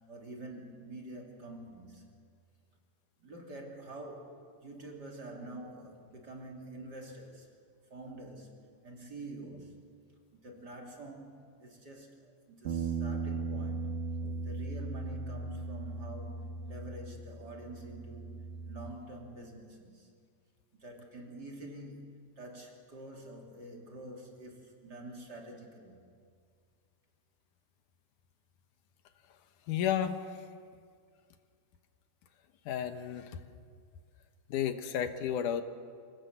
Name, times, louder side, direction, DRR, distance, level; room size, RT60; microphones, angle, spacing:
voice 1, 0.1-2.0 3.2-7.5 7.9-8.5 8.8-9.8 10.3-14.0 14.4-20.1 20.7-26.0, right 2 dB, 35° right, 0 dB, 3.1 m, -47 dB
sound 1, 12.7-18.9, right 4 dB, 75° right, 2.7 m, -37 dB
voice 2, 29.7-30.2 32.7-33.3 34.5-35.6, left 9 dB, 85° left, 8 dB, 2.6 m, -32 dB
26.5 x 19.0 x 8.0 m, 2.1 s
omnidirectional pair, 3.5 m